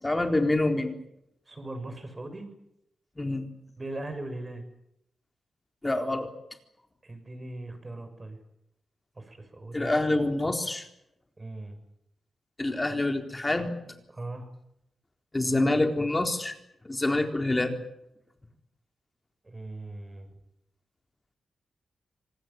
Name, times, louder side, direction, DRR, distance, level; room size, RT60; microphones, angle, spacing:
voice 1, 0.0-1.0 3.2-3.5 5.8-6.3 9.7-10.9 12.6-13.8 15.3-16.5 16.8-17.8, left 2 dB, 20° left, 5 dB, 4.0 m, -26 dB
voice 2, 1.5-2.5 3.8-4.6 7.0-8.4 9.2-9.9 11.4-11.8 14.1-14.5 19.4-20.3, right 2 dB, 25° right, 9 dB, 6.9 m, -39 dB
26.5 x 19.0 x 8.9 m, 0.78 s
cardioid pair, 80°, 0 cm